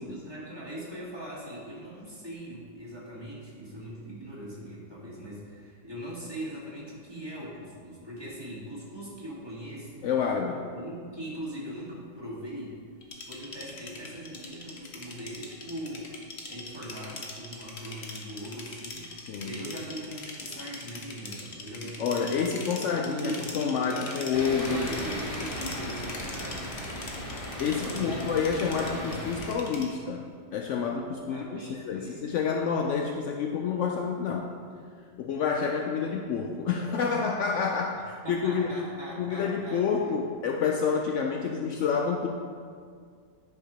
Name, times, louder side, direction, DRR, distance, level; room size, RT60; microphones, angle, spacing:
voice 1, 0.0-10.1 10.7-12.7 13.2-22.6 22.9-26.7 27.3-29.5 31.3-32.2 38.2-40.1, equal, 15° right, -7 dB, 1.7 m, -40 dB
voice 2, 10.0-10.7 19.3-19.6 22.0-24.9 27.6-34.5 35.2-38.7 39.2-42.3, left 6 dB, 85° left, 1 dB, 0.6 m, -29 dB
sound 1, 13.0-29.9, left 3 dB, 45° left, 1.0 m, -42 dB
sound 2, 24.3-29.5, equal, 20° left, 1.2 m, -37 dB
10.0 x 3.6 x 5.0 m, 2.1 s
omnidirectional pair, 1.8 m